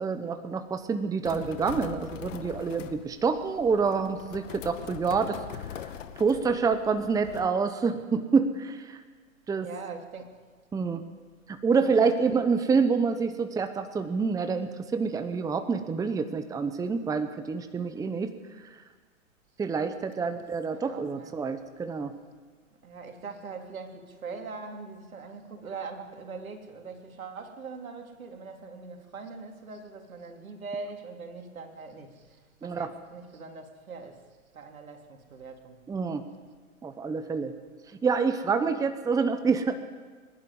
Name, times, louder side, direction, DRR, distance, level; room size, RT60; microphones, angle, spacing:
voice 1, 0.0-5.4 6.2-9.0 9.5-9.7 10.7-11.0 11.5-18.3 19.6-22.1 32.6-32.9 35.9-36.2 36.8-37.5 38.0-39.8, right 5 dB, 10° right, 9 dB, 1.0 m, -27 dB
sound 1, 1.2-7.5, left 9 dB, 65° left, 2.0 m, -42 dB
voice 2, 9.6-10.3 11.8-12.4 20.2-20.5 20.7-21.5 22.8-34.2 34.5-35.8, right 4 dB, 80° right, 4 dB, 3.3 m, -42 dB
24.0 x 11.5 x 9.9 m, 1.5 s
hypercardioid pair, 120°, 41 cm